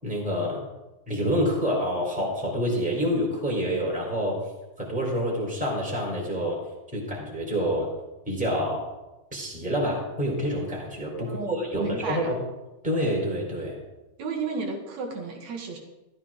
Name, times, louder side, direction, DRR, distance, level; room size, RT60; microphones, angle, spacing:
voice 1, 0.0-0.6 1.1-4.4 4.8-6.6 6.9-7.9 8.3-8.8 9.3-12.4 12.8-13.8, equal, ahead, -3 dB, 3.6 m, -27 dB
voice 2, 11.2-12.3 14.2-15.8, right 4 dB, 55° right, 1 dB, 3.1 m, -33 dB
15.0 x 14.0 x 3.8 m, 1.0 s
omnidirectional pair, 4.0 m